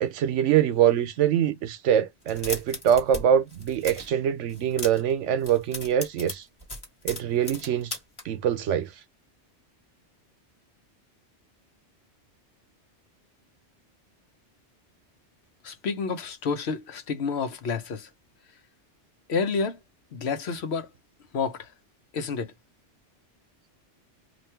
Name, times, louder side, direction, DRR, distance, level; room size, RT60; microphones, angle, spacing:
voice 1, 0.0-6.4 7.0-7.9 8.2-8.9, right 9 dB, 85° right, 1.0 m, -24 dB
sound 1, 2.2-3.2 3.5-4.1 4.5-5.1 5.4-8.2, left 2 dB, 20° left, 1.3 m, -37 dB
voice 2, 15.6-18.1 19.3-19.8 20.1-20.9 21.3-21.7 22.1-22.5, left 5 dB, 65° left, 1.0 m, -29 dB
3.0 x 2.4 x 4.3 m
omnidirectional pair, 1.2 m